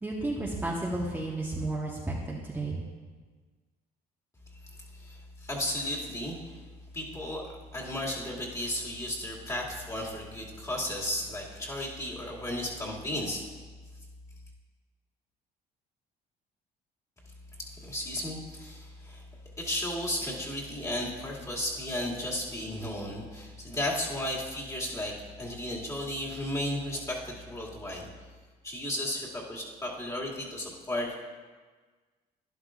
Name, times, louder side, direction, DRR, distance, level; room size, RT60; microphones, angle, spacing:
voice 1, 0.0-2.8, right 2 dB, 10° right, -4 dB, 1.2 m, -32 dB
voice 2, 4.9-6.6 6.9-7.4 7.7-13.4 17.6-19.2 19.6-28.1 28.6-31.2, left 1 dB, 20° left, -4 dB, 2.4 m, -34 dB
12.0 x 11.0 x 2.5 m, 1.4 s
cardioid pair, 110°, 17 cm